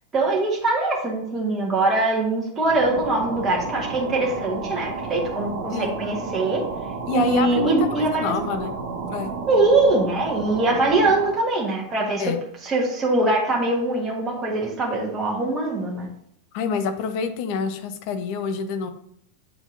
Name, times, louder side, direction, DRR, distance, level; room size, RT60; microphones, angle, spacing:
voice 1, 0.1-6.6 7.1-8.3 9.5-12.3 12.6-16.1, right 2 dB, 20° right, -2 dB, 1.5 m, -22 dB
sound 1, 2.6-11.4, right 4 dB, 55° right, 1.1 m, -32 dB
voice 2, 7.1-8.8 9.1-9.3 12.2-12.4 16.5-18.9, left 6 dB, 45° left, 8 dB, 0.7 m, -27 dB
7.7 x 4.4 x 3.9 m, 0.69 s
figure-of-eight pair, 90°, 0 cm